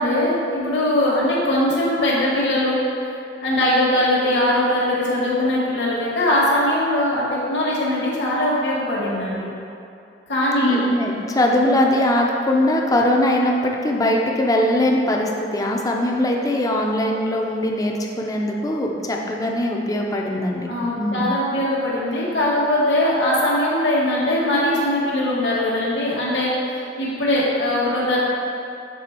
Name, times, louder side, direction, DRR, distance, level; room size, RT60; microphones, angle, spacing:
voice 1, 0.0-2.8 3.4-9.5 10.3-10.8 11.8-11.9 20.7-28.2, left 1 dB, 65° left, -6 dB, 1.2 m, -21 dB
voice 2, 10.6-20.7 21.0-21.3, left 1 dB, 20° left, 0 dB, 0.5 m, -21 dB
6.9 x 3.4 x 4.3 m, 2.6 s
head